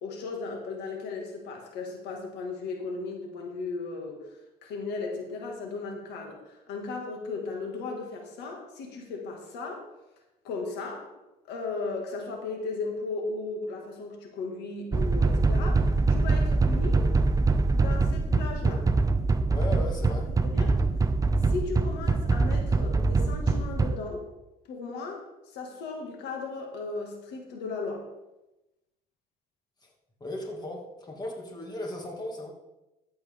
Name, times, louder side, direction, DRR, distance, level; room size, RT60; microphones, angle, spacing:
voice 1, 0.0-9.9 10.4-11.1 11.5-17.1 17.7-18.9 20.4-20.8 21.3-24.2 24.7-25.3 25.5-28.1, left 3 dB, 90° left, 2 dB, 2.0 m, -36 dB
sound 1, 14.9-24.0, right 3 dB, 20° right, 0.6 m, -24 dB
voice 2, 19.5-20.3 20.6-20.9 29.8-29.9 30.2-32.5, left 1 dB, 25° left, 0 dB, 2.3 m, -37 dB
13.5 x 7.7 x 3.6 m, 0.97 s
cardioid pair, 110°, 17 cm